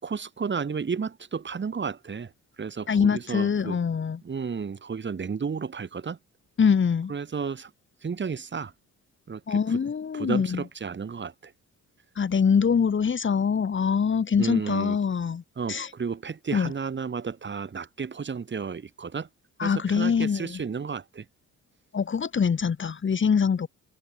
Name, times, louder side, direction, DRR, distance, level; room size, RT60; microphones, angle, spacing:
voice 1, 0.0-3.8 4.2-6.2 7.1-7.7 8.0-8.7 9.3-9.8 10.1-11.5 14.4-15.0 15.6-19.3 19.6-21.3, right 6 dB, 40° right, 3.9 m, -32 dB
voice 2, 2.9-4.2 6.6-7.1 9.5-10.6 12.2-15.4 15.7-15.9 16.5-16.7 19.6-20.6 21.9-23.7, left 6 dB, 40° left, 2.9 m, -24 dB
open air
cardioid pair, 90°, 30 cm